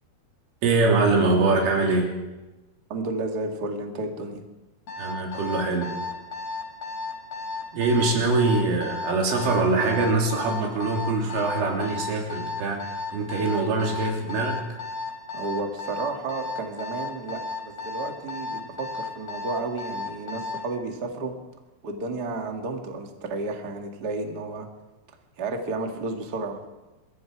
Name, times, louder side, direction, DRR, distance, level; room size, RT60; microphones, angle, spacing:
voice 1, 0.6-2.1 5.0-6.0 7.7-12.8 13.1-14.6, right 3 dB, 90° right, 0 dB, 5.9 m, -23 dB
voice 2, 2.9-4.4 15.3-21.3 21.8-24.7 25.4-26.6, right 3 dB, 35° right, 3 dB, 1.7 m, -32 dB
Alarm, 4.9-20.7, left 3 dB, 35° left, 5.4 m, -33 dB
26.5 x 21.0 x 4.9 m, 1.1 s
omnidirectional pair, 5.5 m